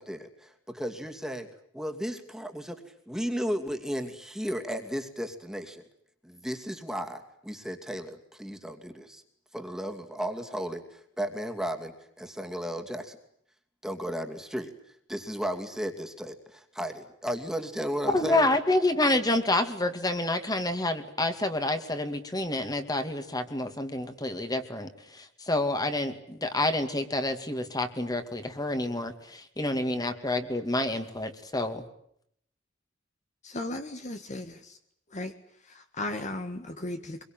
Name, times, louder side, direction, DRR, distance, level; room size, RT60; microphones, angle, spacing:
voice 1, 0.0-1.5 1.7-5.8 6.2-9.2 9.5-13.2 13.8-14.7 15.1-18.5, equal, 5° right, 4 dB, 2.7 m, -34 dB
voice 2, 18.1-31.8, left 2 dB, 20° left, 8 dB, 2.4 m, -28 dB
voice 3, 33.4-34.8 35.1-35.3 35.6-37.2, left 2 dB, 40° left, 6 dB, 1.7 m, -36 dB
25.0 x 23.0 x 9.1 m, 0.70 s
head